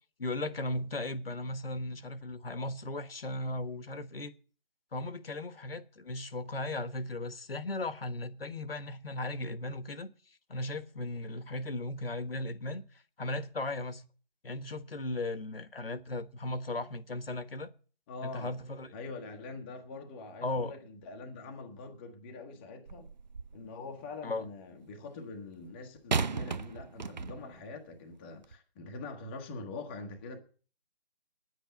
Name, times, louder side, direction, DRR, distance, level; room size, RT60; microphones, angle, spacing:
voice 1, 0.2-4.3 4.9-10.1 10.5-12.8 13.2-14.0 14.4-17.7 18.2-18.9 20.4-20.8 24.2-24.5, left 2 dB, 65° left, 1.4 m, -36 dB
voice 2, 18.1-18.5 18.9-23.1 23.5-30.4, left 3 dB, 10° left, 0.9 m, -44 dB
sound 1, 22.9-23.7 26.1-27.6 28.4-28.6, right 5 dB, 45° right, 0.5 m, -35 dB
10.0 x 8.1 x 8.1 m
figure-of-eight pair, 150°, 31 cm